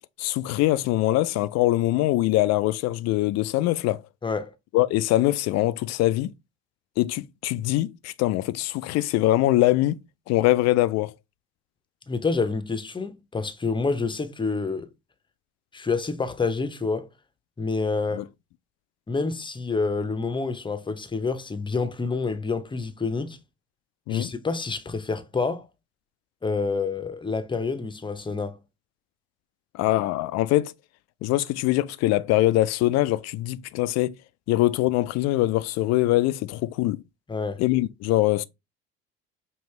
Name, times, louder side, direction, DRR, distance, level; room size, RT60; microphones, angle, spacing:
voice 1, 0.2-4.0 4.7-6.3 7.0-10.0 10.3-11.1 18.1-18.2 24.1-24.3 29.7-30.7 31.2-34.1 34.5-37.0 37.6-38.4, left 16 dB, 55° left, 0.4 m, -23 dB
voice 2, 4.2-4.5 12.1-14.9 15.7-17.1 17.6-18.3 19.1-23.4 24.1-25.7 26.4-28.6 37.3-37.6, left 4 dB, 15° left, 0.7 m, -28 dB
5.3 x 2.7 x 3.2 m
hypercardioid pair, 65°, 32 cm